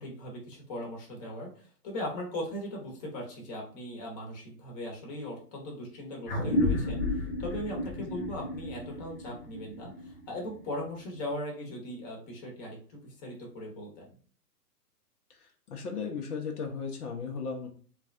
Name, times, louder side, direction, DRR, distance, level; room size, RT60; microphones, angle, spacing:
voice 1, 0.0-14.1, left 1 dB, 25° left, -1 dB, 0.9 m, -39 dB
sound 1, 6.3-11.1, left 1 dB, 50° left, 1.1 m, -32 dB
voice 2, 15.3-17.7, left 5 dB, 70° left, 2 dB, 0.8 m, -36 dB
3.2 x 2.3 x 2.5 m, 0.44 s
hypercardioid pair, 130°, 47 cm